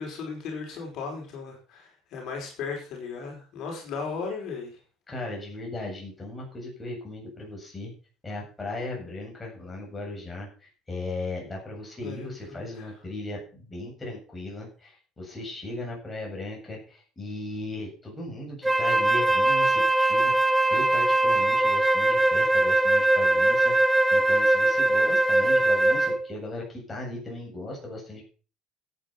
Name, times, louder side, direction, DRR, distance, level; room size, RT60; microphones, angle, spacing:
voice 1, 0.0-4.8 12.0-12.9, left 5 dB, 55° left, 0 dB, 5.3 m, -36 dB
voice 2, 5.1-7.9 8.2-28.2, left 2 dB, 15° left, -2 dB, 7.8 m, -37 dB
Wind instrument woodwind instrument, 18.6-26.3, right 2 dB, 5° right, 0.8 m, -21 dB
13.5 x 9.1 x 6.0 m, 0.39 s
cardioid pair, 145°, 0 cm